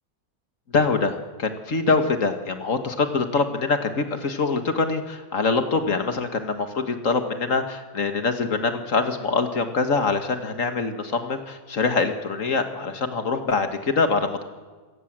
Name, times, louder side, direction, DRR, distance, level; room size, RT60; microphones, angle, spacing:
voice 1, 0.7-14.4, left 4 dB, 45° left, 7 dB, 1.9 m, -24 dB
27.5 x 17.0 x 7.6 m, 1.4 s
omnidirectional pair, 2.0 m